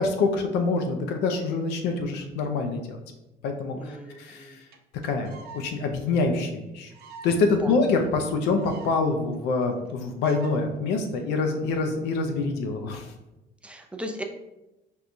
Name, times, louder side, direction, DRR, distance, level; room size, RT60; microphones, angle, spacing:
voice 1, 0.0-3.0 3.4-4.6 5.0-6.9 7.2-13.1, left 3 dB, 85° left, 4 dB, 0.4 m, -26 dB
voice 2, 3.7-4.6 7.5-7.8 13.6-14.2, equal, 5° right, 4 dB, 0.4 m, -37 dB
sound 1, 4.4-4.5 4.7-4.8 5.0-5.7 6.0-6.1 6.3-6.4 6.9-7.4 7.7-7.8 8.0-8.1 8.3-9.0 9.3-9.4 9.6-9.9 10.2-10.5 11.2-11.4, right 5 dB, 65° right, 0.5 m, -45 dB
4.4 x 2.2 x 2.5 m, 0.97 s
cardioid pair, 110°, 17 cm